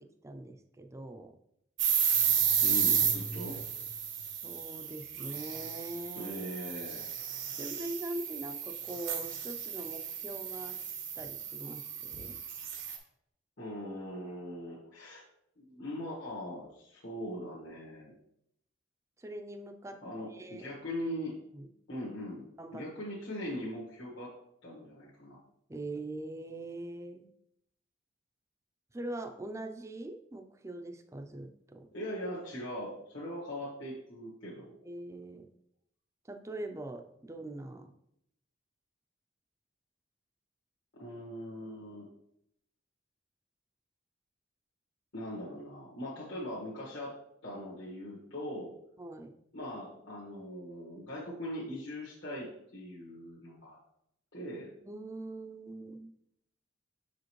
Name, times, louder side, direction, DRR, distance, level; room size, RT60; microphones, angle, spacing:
voice 1, 0.2-1.3 3.5-3.6 4.4-6.3 7.6-10.8 11.2-12.4 19.2-20.0 20.3-20.7 21.5-21.7 22.6-22.9 25.7-27.3 28.9-31.9 34.8-35.5 36.3-37.9 49.0-49.3 54.8-56.1, right 2 dB, 15° right, 6 dB, 0.4 m, -42 dB
sound 1, 1.8-13.0, right 8 dB, 85° right, 1.1 m, -33 dB
voice 2, 2.6-3.6 6.1-7.1 13.6-15.2 15.6-18.1 20.0-21.3 21.9-22.4 22.7-24.3 24.6-25.4 31.9-34.8 40.9-42.1 45.1-47.1 47.4-48.7 49.5-52.5 52.7-53.8 54.3-54.7, left 1 dB, 70° left, -7 dB, 1.5 m, -40 dB
6.3 x 5.0 x 3.1 m, 0.77 s
head